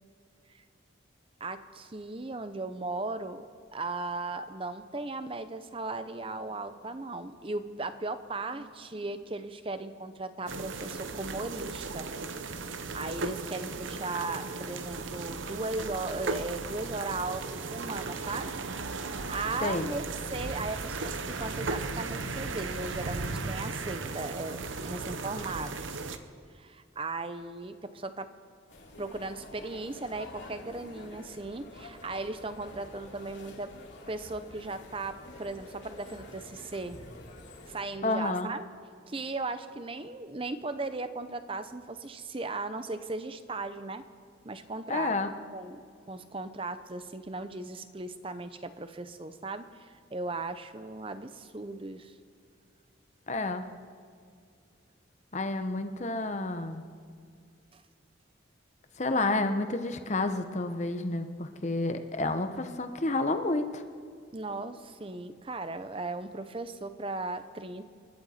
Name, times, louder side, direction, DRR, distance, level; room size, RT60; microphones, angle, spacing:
voice 1, 1.4-3.5 3.7-12.1 12.9-18.5 19.0-24.6 24.8-26.0 26.5-28.3 29.0-33.7 34.1-37.0 37.7-38.7 39.1-44.0 44.4-45.8 46.1-52.1 57.7-57.8 64.3-67.9, right 3 dB, 30° right, 11 dB, 0.7 m, -37 dB
sound 1, 10.5-26.2, right 3 dB, 80° right, 0.9 m, -36 dB
sound 2, 28.7-37.8, left 1 dB, 75° left, 3.2 m, -48 dB
voice 2, 38.0-38.5 44.9-45.3 53.3-53.6 55.3-56.8 59.0-63.8, left 2 dB, 35° left, 8 dB, 0.9 m, -30 dB
28.0 x 11.0 x 4.3 m, 2.2 s
head